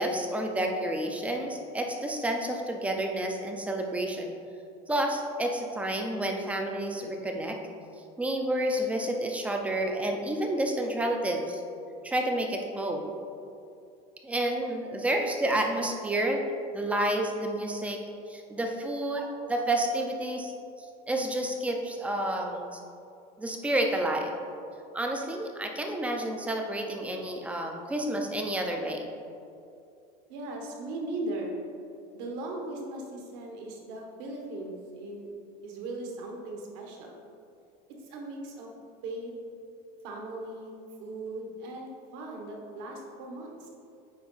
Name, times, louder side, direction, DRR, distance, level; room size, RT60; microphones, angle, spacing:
voice 1, 0.0-4.3 4.9-7.6 8.2-11.6 12.0-13.1 14.2-16.4 16.7-18.0 18.3-20.5 21.1-22.8 23.4-24.3 24.9-29.1, right 1 dB, 5° right, 2 dB, 0.4 m, -30 dB
voice 2, 30.3-31.5 32.1-35.3 35.6-37.2 38.0-38.7 39.0-39.3 40.0-40.7 41.0-43.7, right 2 dB, 60° right, 0 dB, 1.3 m, -38 dB
9.4 x 3.6 x 3.9 m, 2.6 s
cardioid pair, 160°, 19 cm